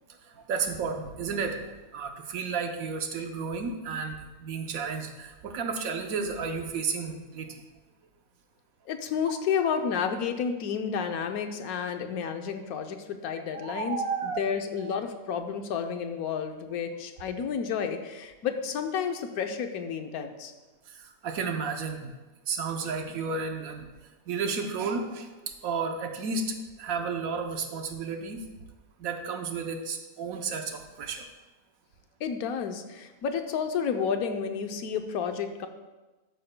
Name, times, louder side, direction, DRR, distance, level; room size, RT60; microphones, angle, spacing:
voice 1, 0.2-1.6 1.9-7.6 13.3-14.5 14.8-15.0 20.9-22.1 22.5-23.9 24.3-28.4 29.0-31.3, right 5 dB, 70° right, 5 dB, 1.2 m, -32 dB
voice 2, 8.9-14.0 14.2-20.5 32.2-35.7, left 7 dB, 80° left, 6 dB, 1.2 m, -31 dB
12.0 x 9.2 x 2.2 m, 1.2 s
omnidirectional pair, 1.5 m